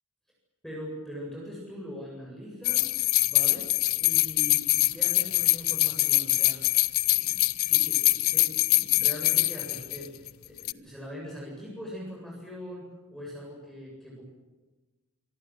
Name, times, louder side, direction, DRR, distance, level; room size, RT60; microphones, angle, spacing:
voice 1, 0.6-3.7 4.0-6.9 7.1-14.2, equal, ahead, -3 dB, 8.0 m, -42 dB
sound 1, 2.6-10.3 10.6-10.7, left 18 dB, 85° left, 0.7 m, -24 dB
26.0 x 23.5 x 7.8 m, 1.2 s
head